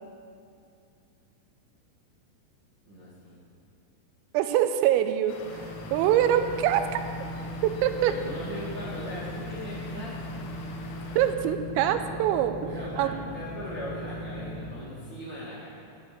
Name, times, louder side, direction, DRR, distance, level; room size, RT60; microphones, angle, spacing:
voice 1, 2.8-3.4 8.0-10.5 12.6-15.7, equal, 45° right, -9 dB, 1.5 m, -39 dB
voice 2, 4.3-6.8 7.6-8.1 11.2-12.7 13.0-13.1, right 11 dB, 85° right, 9 dB, 3.4 m, -24 dB
sound 1, 5.3-11.3, left 4 dB, 70° left, 2.4 m, -45 dB
sound 2, 5.4-14.7, equal, 70° right, 3.6 m, -38 dB
9.8 x 9.7 x 8.6 m, 2.4 s
omnidirectional pair, 5.9 m